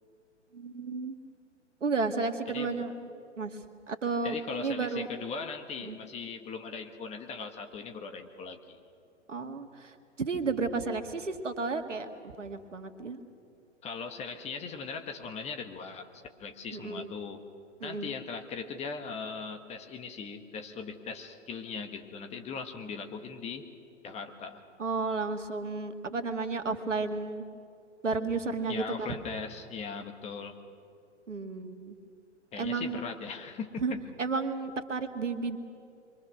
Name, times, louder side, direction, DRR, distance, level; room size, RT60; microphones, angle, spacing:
voice 1, 0.5-1.2 1.8-2.9 3.4-5.1 5.8-6.0 9.3-13.2 16.7-17.1 17.8-18.1 24.8-27.5 28.0-29.1 31.3-32.0 32.6-33.0 33.8-35.6, right 4 dB, 80° right, 7 dB, 2.1 m, -33 dB
voice 2, 2.5-2.8 4.2-8.8 13.8-16.1 16.4-17.4 17.8-23.7 24.0-24.6 28.7-30.6 32.5-33.8, left 5 dB, 15° left, 6 dB, 1.5 m, -39 dB
29.0 x 23.5 x 6.4 m, 2.4 s
figure-of-eight pair, 120°, 36 cm